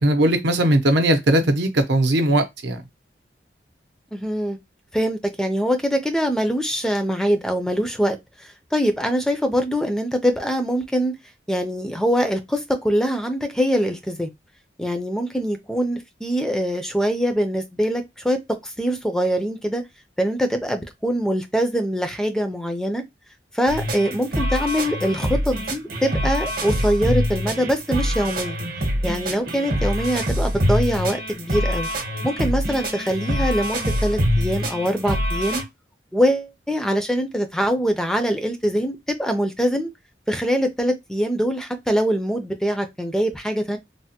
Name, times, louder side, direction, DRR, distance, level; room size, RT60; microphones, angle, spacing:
voice 1, 0.0-2.8, right 1 dB, 80° right, 0.7 m, -19 dB
voice 2, 4.1-4.6 4.9-11.1 11.5-14.3 14.8-19.8 20.2-23.0 23.5-28.6 29.0-31.9 32.2-35.6 36.1-39.9 40.3-43.8, equal, 5° left, 0.4 m, -23 dB
sound 1, 23.7-35.6, equal, 55° right, 0.8 m, -25 dB
3.3 x 2.1 x 2.8 m
head